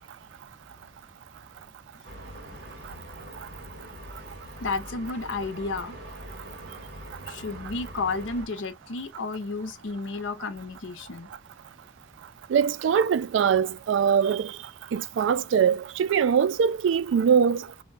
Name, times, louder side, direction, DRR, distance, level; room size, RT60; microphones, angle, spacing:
sound 1, 2.0-8.5, right 1 dB, 55° right, 1.1 m, -43 dB
voice 1, 4.6-6.0 7.3-11.3, left 3 dB, 85° left, 0.6 m, -32 dB
voice 2, 12.5-14.5 14.9-17.7, right 7 dB, 80° right, 0.3 m, -22 dB
2.6 x 2.1 x 3.2 m
head